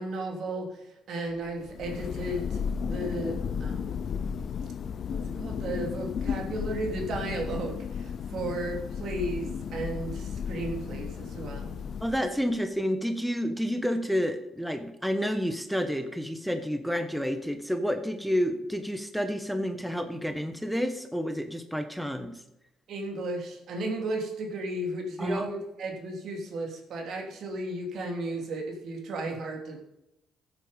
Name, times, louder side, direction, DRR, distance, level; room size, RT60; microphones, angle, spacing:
voice 1, 0.0-2.6 2.9-4.1 5.1-11.7 22.9-29.8, right 1 dB, 65° right, 2 dB, 2.9 m, -34 dB
Thunder, 1.5-12.5, left 7 dB, 55° left, 0.6 m, -34 dB
voice 2, 12.0-22.3 25.2-25.4, equal, ahead, 7 dB, 1.3 m, -29 dB
14.5 x 8.1 x 5.3 m, 0.87 s
supercardioid pair, 70°, 0 cm